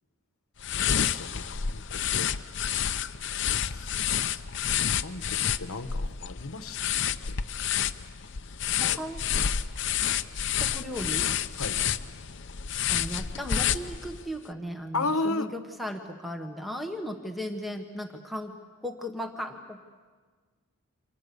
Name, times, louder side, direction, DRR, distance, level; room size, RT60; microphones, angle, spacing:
sound 1, 0.6-14.3, left 9 dB, 55° left, 0.7 m, -29 dB
voice 1, 1.0-2.3 3.7-4.1 4.9-6.8 7.1-7.4 8.7-9.0 11.6-11.8 14.9-15.5, left 3 dB, 75° left, 10 dB, 1.1 m, -34 dB
voice 2, 8.8-9.2 10.6-11.3 12.9-18.5 18.8-19.8, equal, ahead, 4 dB, 1.2 m, -36 dB
29.0 x 25.5 x 6.9 m, 1.4 s
head